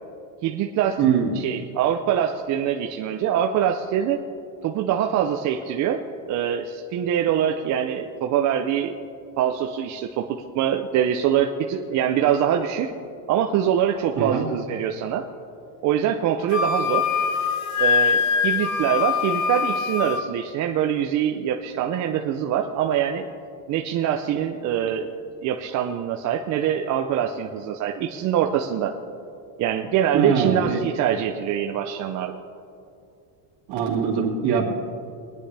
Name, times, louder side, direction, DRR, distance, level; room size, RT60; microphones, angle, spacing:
voice 1, 0.4-1.0 1.3-4.2 4.6-6.0 6.3-8.9 9.4-12.9 13.3-15.2 15.8-17.1 17.8-23.3 23.7-25.1 25.4-29.0 29.6-32.4, right 9 dB, 40° right, 3 dB, 0.6 m, -24 dB
voice 2, 1.0-1.4 14.2-14.4 30.1-30.8 33.7-34.6, right 7 dB, 55° right, -2 dB, 2.5 m, -22 dB
Wind instrument woodwind instrument, 16.5-20.2, left 6 dB, 40° left, 0.8 m, -23 dB
22.0 x 10.0 x 3.3 m, 2.5 s
cardioid pair, 160°, 46 cm